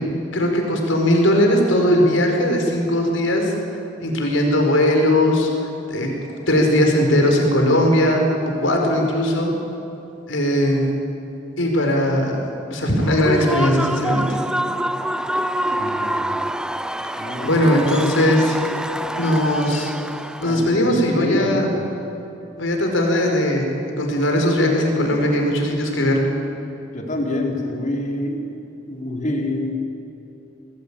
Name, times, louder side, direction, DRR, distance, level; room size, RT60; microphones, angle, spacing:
voice 1, 0.3-3.5 4.0-5.5 5.9-6.1 6.5-8.2 8.6-9.5 10.3-10.9 11.6-14.4 17.4-18.6 19.2-19.9 20.4-21.7 22.6-23.7 24.0-26.2, left 1 dB, 80° left, 2 dB, 5.0 m, -19 dB
Human voice / Cheering / Applause, 13.0-20.7, right 1 dB, 5° right, 0.7 m, -26 dB
voice 2, 15.8-16.4 17.2-17.7 20.4-21.8 26.9-28.5 28.9-29.8, left 1 dB, 40° left, 0 dB, 4.3 m, -27 dB
27.0 x 20.0 x 9.0 m, 2.9 s
head